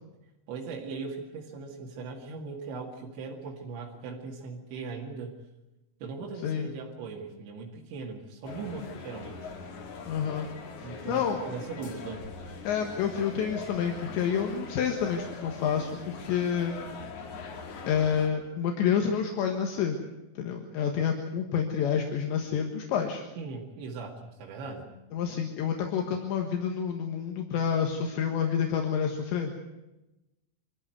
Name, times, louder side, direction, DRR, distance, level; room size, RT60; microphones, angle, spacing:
voice 1, 0.5-5.4 6.0-9.5 10.8-12.3 23.4-24.9, right 4 dB, 70° right, -2 dB, 4.5 m, -39 dB
sound 1, 8.4-18.3, left 4 dB, 45° left, 3.1 m, -42 dB
voice 2, 10.1-10.5 10.8-11.4 12.7-16.8 17.6-20.0 20.4-23.3 25.1-29.6, left 7 dB, 75° left, 3 dB, 3.7 m, -29 dB
25.0 x 14.5 x 9.2 m, 1.0 s
omnidirectional pair, 5.4 m